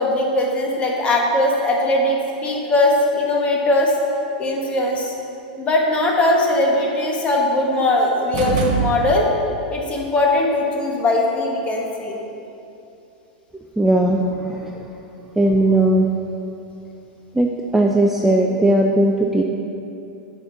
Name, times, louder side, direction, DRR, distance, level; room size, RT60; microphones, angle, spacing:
voice 1, 0.0-3.9 4.4-5.1 5.6-9.3 9.7-12.2, left 1 dB, 25° left, -1 dB, 1.4 m, -20 dB
sound 1, 8.3-9.6, right 5 dB, 55° right, 1.0 m, -23 dB
voice 2, 13.8-14.7 15.4-16.1 17.3-19.4, right 1 dB, 5° right, 1 dB, 0.4 m, -17 dB
7.7 x 5.2 x 6.1 m, 2.8 s
hypercardioid pair, 125°, 5 cm